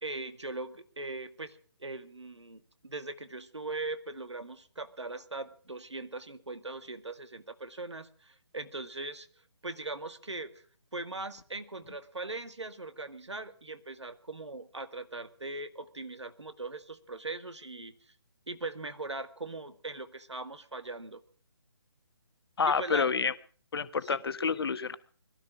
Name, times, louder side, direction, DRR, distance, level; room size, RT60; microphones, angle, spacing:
voice 1, 0.0-9.3 9.6-10.6 10.9-17.9 18.5-21.2 22.7-23.1 24.0-24.2, right 2 dB, 85° right, 10 dB, 2.1 m, -40 dB
voice 2, 22.6-23.3 23.7-25.0, left 5 dB, 60° left, 13 dB, 1.3 m, -28 dB
22.0 x 12.5 x 5.0 m, 0.44 s
figure-of-eight pair, 145°, 14 cm